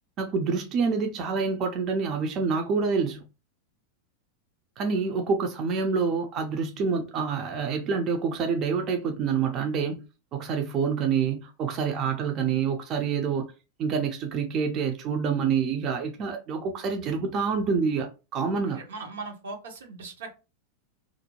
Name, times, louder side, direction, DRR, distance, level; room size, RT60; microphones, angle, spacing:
voice 1, 0.2-3.3 4.8-10.0 10.3-13.4 13.8-18.8, right 5 dB, 40° right, 0.5 m, -27 dB
voice 2, 18.7-20.3, right 3 dB, 85° right, 0.8 m, -39 dB
2.5 x 2.2 x 2.9 m
hypercardioid pair, 110°, 0 cm